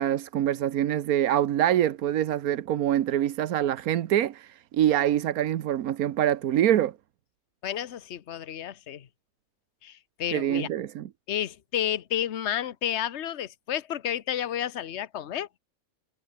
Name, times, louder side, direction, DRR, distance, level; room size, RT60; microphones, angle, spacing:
voice 1, 0.0-7.0 10.3-11.1, right 11 dB, 90° right, 1.3 m, -25 dB
voice 2, 7.6-9.1 9.8-10.7 11.3-15.6, left 10 dB, 55° left, 1.2 m, -31 dB
omnidirectional pair, 1.5 m